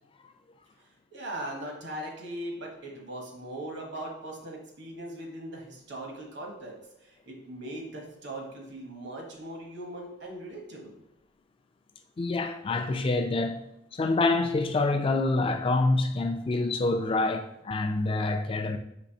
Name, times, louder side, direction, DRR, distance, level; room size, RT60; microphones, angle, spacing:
voice 1, 0.8-11.0, right 1 dB, 65° right, 1.0 m, -40 dB
voice 2, 12.2-13.6 13.9-18.8, left 2 dB, 30° left, 0.3 m, -26 dB
5.2 x 3.1 x 2.7 m
head